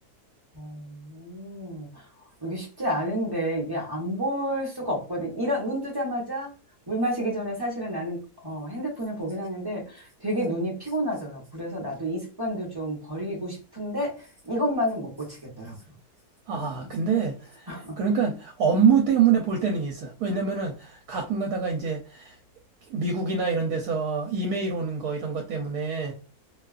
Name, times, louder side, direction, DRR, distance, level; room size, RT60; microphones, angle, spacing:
voice 1, 0.5-2.0 2.4-6.5 6.9-15.8 16.5-16.9 17.7-18.0, equal, 20° right, 0.7 m, -30 dB
voice 2, 16.5-22.3 22.9-26.1, right 6 dB, 75° right, 1.1 m, -25 dB
2.8 x 2.3 x 2.3 m
omnidirectional pair, 1.7 m